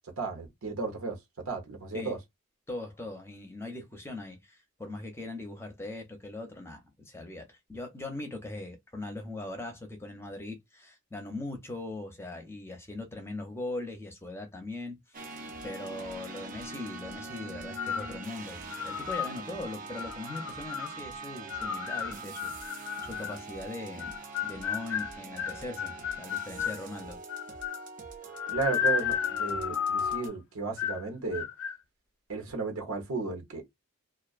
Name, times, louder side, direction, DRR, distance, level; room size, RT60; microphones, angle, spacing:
voice 1, 0.2-1.2 1.5-2.2 28.5-31.4 32.3-33.6, right 4 dB, 90° right, 1.0 m, -34 dB
voice 2, 2.7-15.0 15.6-27.2, left 2 dB, 10° left, 0.6 m, -40 dB
sound 1, 15.1-30.3, right 3 dB, 40° right, 0.4 m, -43 dB
sound 2, 17.8-18.2 18.7-19.3 20.0-20.9 21.5-23.4 24.0-26.8 27.3-27.9 28.3-30.3 30.8-31.1 31.3-31.8, left 8 dB, 70° left, 0.3 m, -33 dB
2.4 x 2.2 x 2.4 m
head